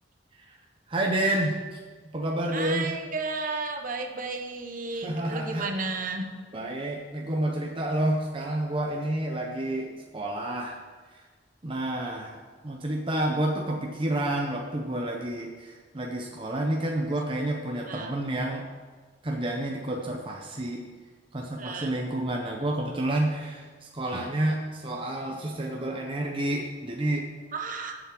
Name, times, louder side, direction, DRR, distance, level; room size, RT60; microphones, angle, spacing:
voice 1, 0.9-1.8 2.1-2.9 5.0-5.7 6.5-10.8 11.1-11.2 11.6-18.6 19.2-20.8 21.3-27.3, right 1 dB, 30° right, 0 dB, 0.8 m, -29 dB
voice 2, 2.5-6.3 11.9-12.1 17.9-18.1 21.6-21.9 27.5-27.9, right 3 dB, 45° right, 4 dB, 1.0 m, -33 dB
7.1 x 7.0 x 7.5 m, 1.4 s
head